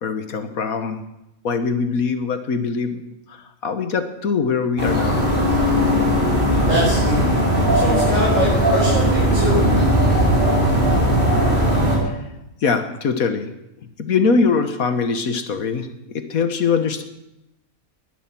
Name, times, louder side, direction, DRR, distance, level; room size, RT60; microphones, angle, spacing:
voice 1, 0.0-1.0 1.4-3.0 3.3-5.2 12.0-12.2 12.6-13.5 14.0-15.9 16.1-17.0, left 5 dB, 80° left, 9 dB, 1.8 m, -22 dB
sound 1, 4.8-12.0, equal, 35° right, 4.9 m, -18 dB
voice 2, 6.7-7.3 7.7-9.7, equal, 60° right, -7 dB, 5.8 m, -23 dB
20.0 x 11.0 x 6.1 m, 0.91 s
omnidirectional pair, 1.5 m